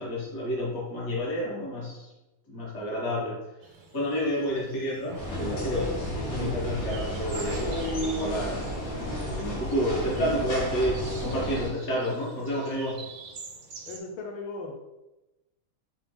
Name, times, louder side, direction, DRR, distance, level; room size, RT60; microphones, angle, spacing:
voice 1, 0.0-2.1 2.5-3.4 3.9-8.8 9.4-13.1, equal, 40° left, -5 dB, 1.2 m, -30 dB
sound 1, 3.6-14.0, right 4 dB, 85° right, 0.8 m, -47 dB
sound 2, 5.1-11.7, equal, 60° left, 1.5 m, -32 dB
voice 2, 13.9-14.7, left 3 dB, 80° left, 0 dB, 1.4 m, -37 dB
5.0 x 2.2 x 3.2 m, 1.0 s
omnidirectional pair, 2.4 m